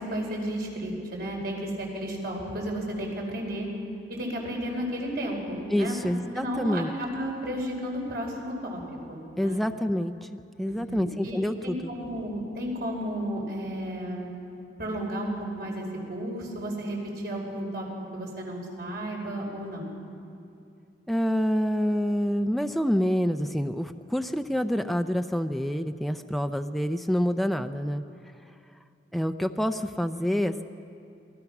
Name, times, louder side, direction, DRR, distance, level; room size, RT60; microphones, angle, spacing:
voice 1, 0.0-3.7 4.1-8.8 9.1-9.6 10.6-14.3 14.8-17.0 17.2-17.9 18.1-19.9, equal, 60° right, 0 dB, 5.2 m, -33 dB
voice 2, 5.7-6.9 9.4-10.1 10.6-11.9 21.1-28.0 29.1-30.6, equal, ahead, 7 dB, 0.5 m, -27 dB
27.5 x 19.0 x 6.0 m, 2.5 s
head